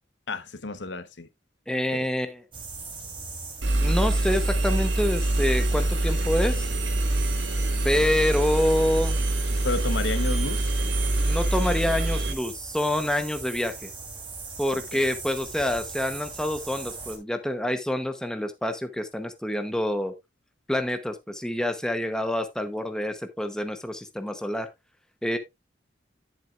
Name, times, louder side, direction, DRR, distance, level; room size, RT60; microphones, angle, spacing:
voice 1, 0.3-1.3 1.9-2.1 9.6-10.7 14.7-15.0, left 3 dB, 80° left, 1.0 m, -31 dB
voice 2, 1.7-2.4 3.8-6.7 7.8-9.2 11.3-13.9 14.6-20.1 20.7-24.7 25.2-25.4, left 1 dB, 5° left, 0.9 m, -27 dB
sound 1, 2.5-17.2, right 4 dB, 30° right, 3.2 m, -39 dB
Engine, 3.6-12.3, right 1 dB, 85° right, 1.6 m, -25 dB
11.0 x 7.6 x 2.4 m
head